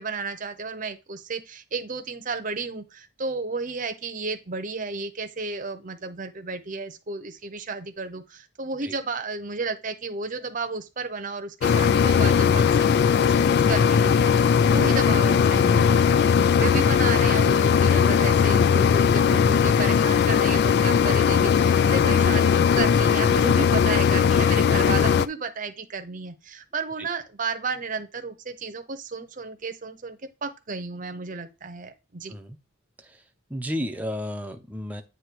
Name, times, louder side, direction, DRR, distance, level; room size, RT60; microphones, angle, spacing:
voice 1, 0.0-32.3, right 4 dB, 40° right, 0.8 m, -33 dB
sound 1, 11.6-25.3, left 7 dB, 55° left, 0.3 m, -19 dB
voice 2, 33.5-35.0, equal, 10° right, 0.7 m, -32 dB
8.3 x 2.9 x 4.6 m
head